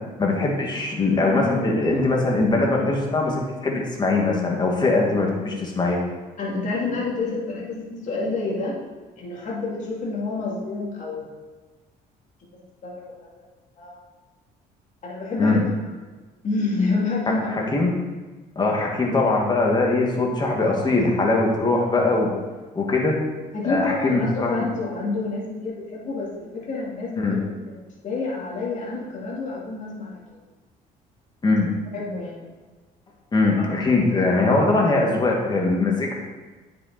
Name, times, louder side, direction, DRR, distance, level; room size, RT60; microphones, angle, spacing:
voice 1, 0.2-6.0 15.4-15.6 17.5-17.9 18.6-22.3 22.8-23.2 23.6-24.7 27.2-27.3 31.4-31.7 33.3-36.1, left 2 dB, 25° left, -1 dB, 1.9 m, -21 dB
voice 2, 6.4-8.8 9.2-11.3 12.8-13.4 13.8-14.0 15.0-15.9 16.4-17.7 23.5-30.4 31.9-32.5, left 3 dB, 45° left, -4 dB, 2.6 m, -29 dB
9.2 x 7.4 x 4.1 m, 1.3 s
cardioid pair, 110°, 17 cm